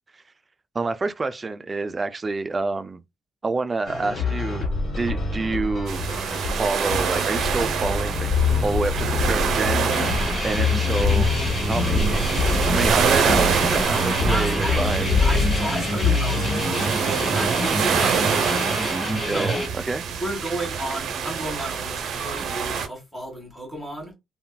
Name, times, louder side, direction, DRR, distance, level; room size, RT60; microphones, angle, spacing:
voice 1, 0.7-3.0 3.4-4.7 5.0-6.0 6.6-8.3 8.6-9.9 10.4-11.3 11.7-12.4 12.7-15.1 19.3-19.6 19.9-20.0, right 3 dB, 30° right, 0.3 m, -27 dB
sound 1, 3.9-16.9, left 4 dB, 40° left, 1.2 m, -25 dB
sound 2, 5.9-22.9, right 7 dB, 70° right, 0.6 m, -26 dB
sound 3, 9.9-19.7, equal, 20° left, 1.0 m, -28 dB
voice 2, 14.2-18.7 19.3-19.7 20.2-24.1, right 1 dB, ahead, 1.9 m, -32 dB
3.3 x 2.3 x 2.2 m
cardioid pair, 90°, 0 cm